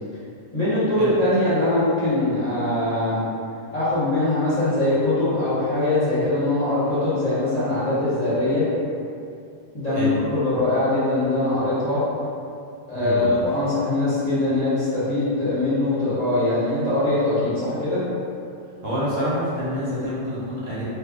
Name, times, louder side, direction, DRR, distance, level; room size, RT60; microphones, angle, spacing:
voice 1, 0.5-3.2 3.7-8.7 9.7-12.0 12.9-18.0, left 2 dB, 30° left, -13 dB, 1.3 m, -22 dB
voice 2, 13.0-13.4 18.8-20.8, equal, 70° right, -9 dB, 1.3 m, -27 dB
2.8 x 2.6 x 3.5 m, 2.4 s
omnidirectional pair, 1.4 m